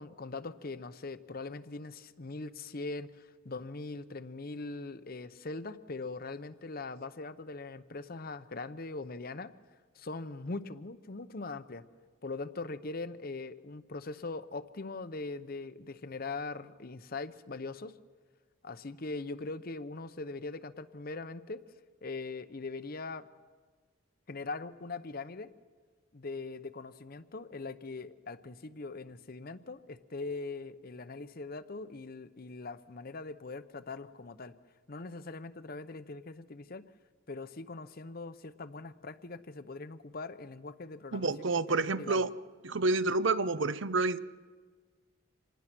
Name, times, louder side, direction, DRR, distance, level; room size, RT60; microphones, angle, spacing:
voice 1, 0.0-9.5 10.0-11.8 12.2-17.9 18.6-21.6 22.0-23.3 24.3-25.5 26.1-34.5 34.9-36.8 37.3-42.3, left 3 dB, 45° left, 13 dB, 0.8 m, -41 dB
voice 2, 41.1-42.3 42.6-44.2, right 3 dB, 60° right, 14 dB, 0.7 m, -29 dB
26.5 x 19.5 x 6.1 m, 1.5 s
head